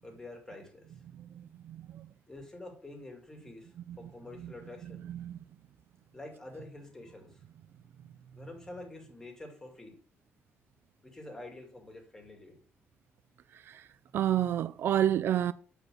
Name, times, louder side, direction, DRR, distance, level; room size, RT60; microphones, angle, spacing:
voice 1, 0.0-0.9 2.3-5.0 6.1-7.4 8.3-10.0 11.0-12.6, left 2 dB, 15° left, 2.4 m, -47 dB
voice 2, 1.1-2.1 3.9-4.0 4.4-4.5 5.1-5.4 13.7-13.9 14.1-15.5, right 11 dB, 60° right, 0.4 m, -30 dB
8.2 x 5.0 x 6.2 m
cardioid pair, 145°, 4 cm